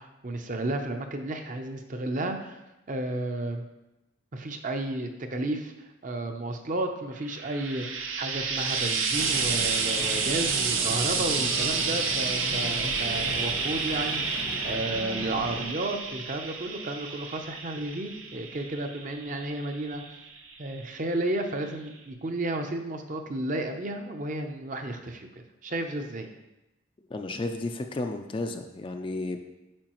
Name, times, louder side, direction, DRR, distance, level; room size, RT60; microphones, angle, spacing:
voice 1, 0.0-2.6 2.9-3.6 4.3-7.9 8.2-14.2 14.6-20.0 20.6-25.3 25.6-26.3, right 2 dB, 40° right, 5 dB, 0.6 m, -32 dB
Frying (food), 7.2-20.7 21.6-21.7, right 5 dB, 80° right, 0.8 m, -30 dB
sound 1, 9.1-15.6, left 1 dB, 80° left, 1.3 m, -38 dB
voice 2, 27.1-29.4, left 2 dB, 25° left, 5 dB, 0.3 m, -32 dB
8.7 x 5.4 x 3.0 m, 0.97 s
head